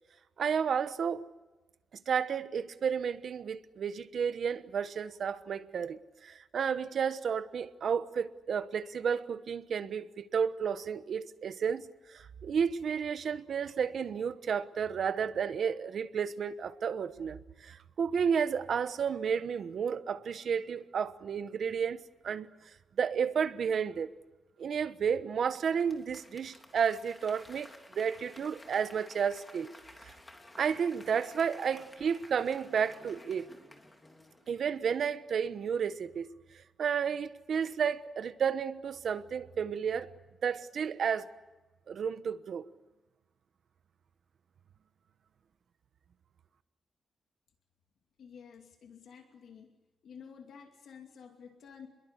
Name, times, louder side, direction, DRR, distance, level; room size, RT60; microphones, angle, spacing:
voice 1, 0.4-1.2 2.1-22.5 23.0-24.1 24.6-29.7 30.0-30.1 30.6-33.5 34.5-36.3 36.5-40.1 40.4-41.3 41.9-42.7, right 7 dB, 60° right, 1.2 m, -32 dB
Applause / Crowd, 25.6-35.0 35.4-35.5, left 1 dB, 15° left, 2.9 m, -54 dB
voice 2, 48.2-49.7 50.0-51.9, left 7 dB, 65° left, 2.6 m, -51 dB
28.0 x 22.0 x 8.2 m
wide cardioid pair, 145°, 0 cm